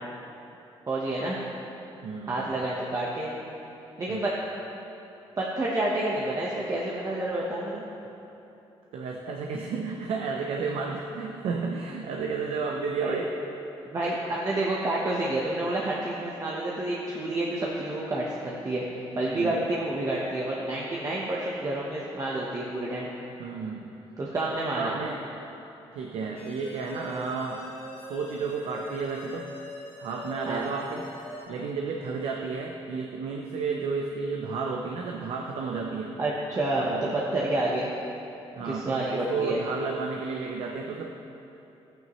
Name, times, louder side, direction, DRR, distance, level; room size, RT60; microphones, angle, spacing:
voice 1, 0.9-1.4 2.3-3.3 4.0-4.3 5.4-7.8 13.0-13.2 13.9-18.3 18.6-23.1 24.2-24.9 30.5-30.7 36.2-37.9 38.5-39.6, right 2 dB, 35° right, -4 dB, 1.1 m, -29 dB
voice 2, 2.0-2.5 4.1-4.2 8.9-13.3 14.5-14.6 19.1-19.6 23.4-23.9 24.8-25.2 25.9-27.7 28.0-29.5 30.0-31.1 31.5-36.2 36.8-37.2 38.6-41.1, right 4 dB, 75° right, 1 dB, 0.7 m, -32 dB
sound 1, 26.4-31.5, left 1 dB, 75° left, 2.3 m, -43 dB
12.0 x 8.8 x 3.1 m, 3.0 s
cardioid pair, 105°, 10 cm